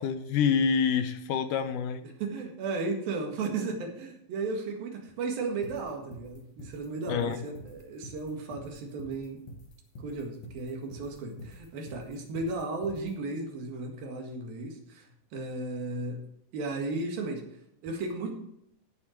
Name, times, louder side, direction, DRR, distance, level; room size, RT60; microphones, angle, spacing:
voice 1, 0.0-2.0 7.1-7.4, left 6 dB, 75° left, 10 dB, 2.1 m, -27 dB
voice 2, 2.2-9.4 10.0-15.1 15.3-16.2 16.5-17.4 17.8-18.3, right 3 dB, 80° right, 2 dB, 3.7 m, -34 dB
sound 1, 5.6-13.1, left 1 dB, 55° left, 2.9 m, -46 dB
16.5 x 7.5 x 4.5 m, 0.75 s
omnidirectional pair, 4.1 m